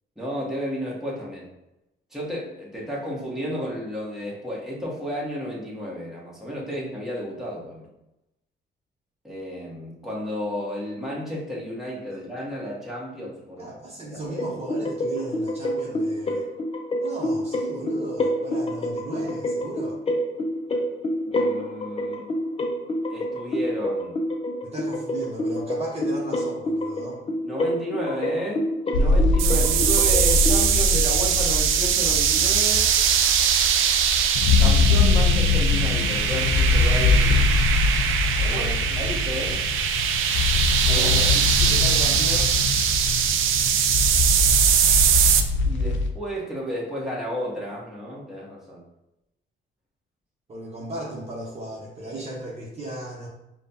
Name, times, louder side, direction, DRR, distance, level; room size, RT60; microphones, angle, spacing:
voice 1, 0.2-1.4 2.1-7.9 9.2-13.7 14.1-14.4 21.3-22.2 23.1-24.2 27.4-32.9 34.6-37.6 38.4-38.6 39.0-39.7 40.8-41.1 45.6-48.8, equal, ahead, -6 dB, 1.4 m, -32 dB
voice 2, 13.6-16.5 17.0-20.0 24.6-27.2 38.4-39.4 40.9-42.6 50.5-53.3, right 1 dB, 30° right, -5 dB, 1.0 m, -35 dB
sound 1, 14.2-30.6, equal, 30° left, 0.6 m, -28 dB
sound 2, 28.9-46.1, left 4 dB, 75° left, 0.5 m, -23 dB
sound 3, 29.4-45.4, right 8 dB, 85° right, 0.4 m, -22 dB
5.0 x 2.4 x 2.7 m, 0.90 s
cardioid pair, 90°, 20 cm